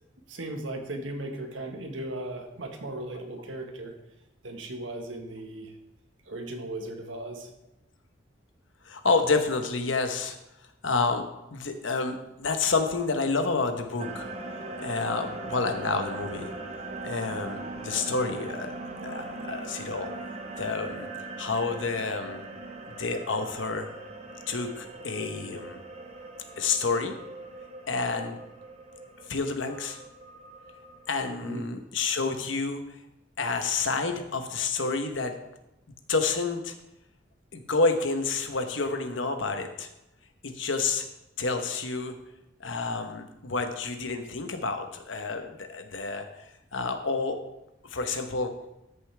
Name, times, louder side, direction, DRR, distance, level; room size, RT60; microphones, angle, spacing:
voice 1, 0.3-3.9 4.4-5.7 6.3-7.5 31.4-31.7, right 1 dB, 90° right, 4 dB, 1.4 m, -37 dB
voice 2, 8.8-10.4 10.8-11.2 11.5-14.3 14.8-16.5 17.0-18.7 19.0-20.1 20.6-21.1 21.4-22.4 23.0-23.9 24.5-25.8 26.6-27.2 27.9-28.4 29.3-30.0 31.1-32.8 33.4-35.4 36.1-36.7 37.5-39.9 40.4-41.0 41.4-42.2 42.6-46.3 46.7-47.4 47.8-48.5, left 4 dB, 85° left, 6 dB, 1.1 m, -29 dB
sound 1, 14.0-31.4, right 2 dB, 35° right, 1.1 m, -40 dB
13.5 x 6.9 x 3.4 m, 0.90 s
head